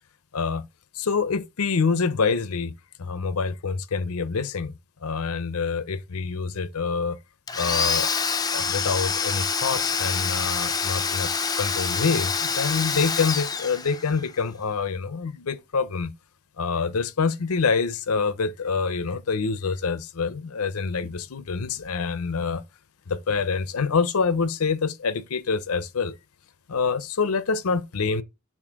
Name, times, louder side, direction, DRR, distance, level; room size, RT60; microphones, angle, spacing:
voice 1, 0.3-0.6 0.9-2.7 3.0-4.7 5.0-7.2 7.6-8.1 8.5-11.3 11.6-16.1 16.6-22.6 23.1-26.2 26.7-28.2, left 5 dB, 75° left, 0.6 m, -26 dB
Domestic sounds home sounds, 7.5-14.3, left 5 dB, 15° left, 0.4 m, -26 dB
7.2 x 2.6 x 5.1 m
head